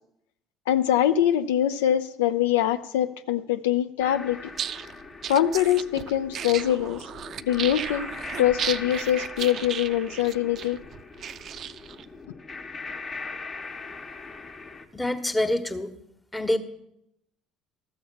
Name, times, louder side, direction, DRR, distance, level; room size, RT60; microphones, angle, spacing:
voice 1, 0.7-4.4 5.3-7.0 7.5-8.1 8.4-10.8, left 11 dB, 75° left, 10 dB, 0.4 m, -23 dB
sound 1, 4.0-14.9, left 3 dB, 35° left, 1.3 m, -40 dB
sound 2, 4.4-12.0, right 9 dB, 50° right, 0.4 m, -35 dB
voice 2, 14.9-15.9 16.3-16.6, left 1 dB, 15° left, 8 dB, 1.3 m, -26 dB
13.0 x 7.0 x 6.9 m, 0.77 s
hypercardioid pair, 60°, 0 cm